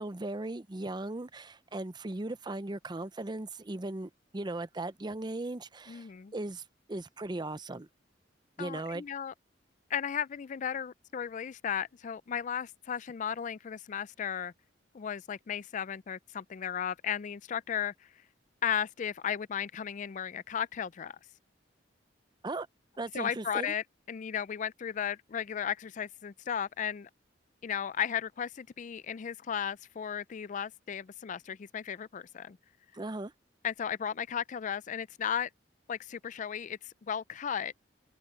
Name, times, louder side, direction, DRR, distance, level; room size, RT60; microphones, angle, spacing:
voice 1, 0.0-6.6 6.9-7.9 8.6-9.0 22.4-22.7 23.0-23.7 32.9-33.3, right 2 dB, 25° right, 0.6 m, -37 dB
voice 2, 5.9-6.3 8.6-9.3 9.9-14.5 14.9-18.1 18.6-21.2 23.1-27.1 27.6-32.6 33.6-35.5 35.9-37.7, left 8 dB, 45° left, 0.4 m, -35 dB
open air
head